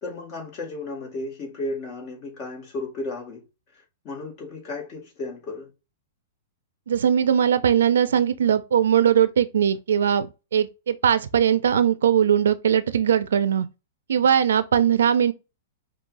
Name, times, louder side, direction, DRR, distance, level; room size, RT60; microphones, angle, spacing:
voice 1, 0.0-3.4 4.0-5.7, left 2 dB, 35° left, 2.1 m, -34 dB
voice 2, 6.9-10.3 10.5-13.7 14.1-15.3, right 9 dB, 85° right, 0.5 m, -20 dB
5.3 x 2.7 x 2.6 m
hypercardioid pair, 150°, 0 cm